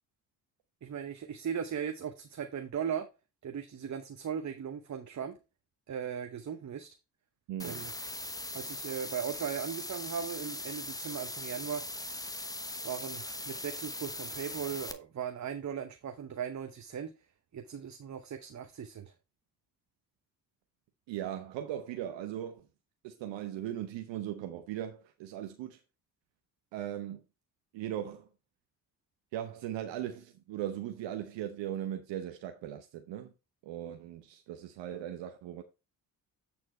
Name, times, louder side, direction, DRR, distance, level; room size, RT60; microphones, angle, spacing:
voice 1, 0.8-3.1 3.4-5.4 5.9-6.9 7.6-7.9 8.5-11.8 12.8-17.1 17.5-19.1, right 8 dB, 35° right, 0.9 m, -38 dB
voice 2, 7.5-7.9 21.1-22.7 23.0-25.8 26.7-27.2 27.7-28.3 29.3-33.3 33.6-35.6, right 11 dB, 65° right, 0.9 m, -38 dB
sound 1, 7.6-14.9, left 1 dB, 10° left, 1.0 m, -40 dB
8.5 x 4.4 x 4.2 m
hypercardioid pair, 45°, 47 cm